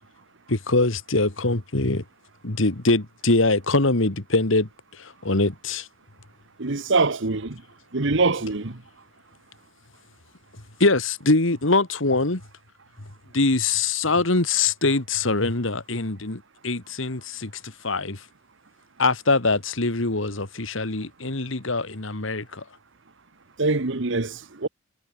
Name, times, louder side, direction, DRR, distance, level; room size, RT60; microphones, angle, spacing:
voice 1, 0.5-2.0 2.4-4.7 5.0-5.9 10.8-12.4 13.3-18.2 19.0-22.6, left 3 dB, 70° left, 2.2 m, -23 dB
voice 2, 6.6-7.6 7.9-8.8 23.6-24.7, right 3 dB, 65° right, 1.3 m, -24 dB
head